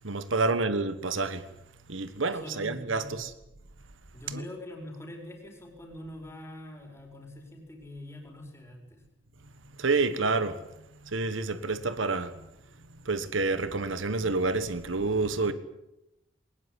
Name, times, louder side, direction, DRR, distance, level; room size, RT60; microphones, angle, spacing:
voice 1, 0.0-1.4 1.9-3.3 4.3-4.4 9.8-10.6 11.0-12.5 13.0-15.5, right 3 dB, 85° right, 1.5 m, -28 dB
voice 2, 2.2-3.2 4.1-9.0, left 1 dB, 15° left, 4.9 m, -44 dB
21.0 x 20.0 x 9.7 m
head